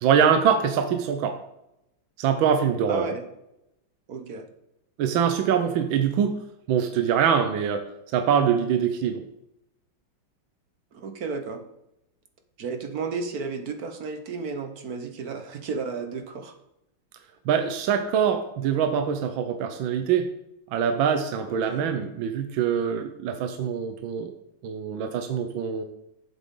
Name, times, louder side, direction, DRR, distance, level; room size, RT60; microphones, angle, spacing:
voice 1, 0.0-1.4 2.2-3.0 5.0-6.4 6.7-7.8 8.1-9.2 17.5-20.3 20.7-24.3 24.6-25.8, right 7 dB, 75° right, 7 dB, 1.5 m, -24 dB
voice 2, 2.9-3.2 4.1-4.5 10.9-11.6 12.6-16.6 21.5-21.8, right 4 dB, 55° right, 6 dB, 1.3 m, -33 dB
11.0 x 8.1 x 3.7 m, 0.84 s
omnidirectional pair, 2.2 m